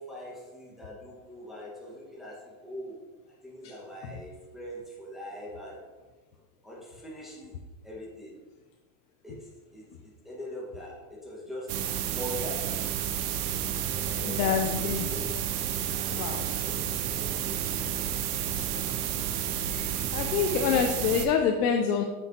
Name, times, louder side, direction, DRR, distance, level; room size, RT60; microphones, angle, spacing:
voice 1, 0.0-3.0 3.3-5.8 6.6-8.4 9.2-12.8 14.0-16.2 16.6-17.8, equal, ahead, -6 dB, 1.5 m, -43 dB
sound 1, 11.7-21.3, right 9 dB, 75° right, 0.8 m, -31 dB
voice 2, 14.2-15.1 16.1-16.4 19.7-22.0, left 7 dB, 90° left, 3 dB, 0.7 m, -27 dB
6.2 x 5.6 x 2.9 m, 1.3 s
supercardioid pair, 110°, 46 cm